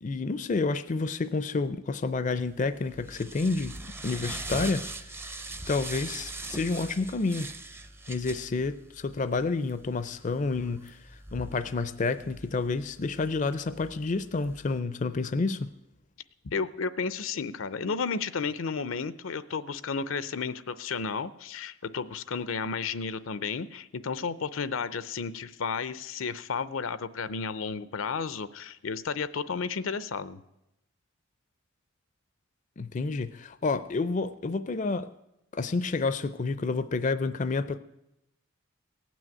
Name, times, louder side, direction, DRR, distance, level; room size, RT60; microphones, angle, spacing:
voice 1, 0.0-5.0 5.7-7.5 8.1-11.0 11.3-15.7 32.8-35.1 35.5-37.8, left 3 dB, 40° left, 0.4 m, -29 dB
sound 1, 2.4-14.8, right 2 dB, 10° right, 0.5 m, -42 dB
voice 2, 16.4-30.4, left 5 dB, 80° left, 0.6 m, -32 dB
17.5 x 6.2 x 9.1 m
head